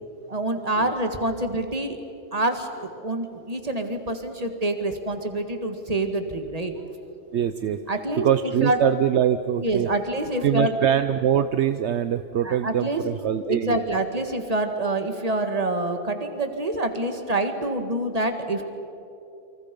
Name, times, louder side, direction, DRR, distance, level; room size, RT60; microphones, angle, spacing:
voice 1, 0.3-2.0 2.3-6.7 7.9-8.3 8.6-8.8 9.6-10.8 12.4-13.0 13.5-18.6, right 2 dB, 30° right, 6 dB, 1.9 m, -26 dB
voice 2, 7.3-7.8 8.2-9.9 10.4-13.9, right 9 dB, 70° right, 10 dB, 1.0 m, -23 dB
29.0 x 25.0 x 5.3 m, 2.8 s
omnidirectional pair, 1.2 m